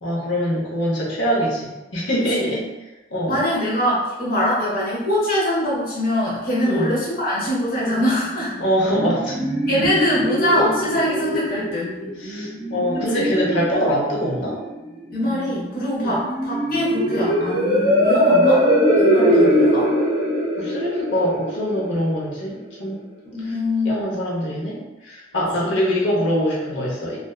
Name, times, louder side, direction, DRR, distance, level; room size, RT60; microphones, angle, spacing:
voice 1, 0.0-2.6 3.1-3.4 6.6-6.9 8.6-9.4 12.2-14.6 16.0-16.1 19.6-19.8 20.6-23.0 23.4-23.5 23.8-24.8 25.0-27.2, equal, 90° left, -5 dB, 0.8 m, -23 dB
voice 2, 3.3-8.5 9.7-11.9 12.9-13.2 15.1-18.7 19.0-19.9 23.3-24.2 25.6-25.8, left 1 dB, 55° left, -6 dB, 0.6 m, -23 dB
Angry Planet, 8.5-22.4, equal, 55° right, 0.8 m, -21 dB
2.6 x 2.3 x 2.3 m, 1.0 s
head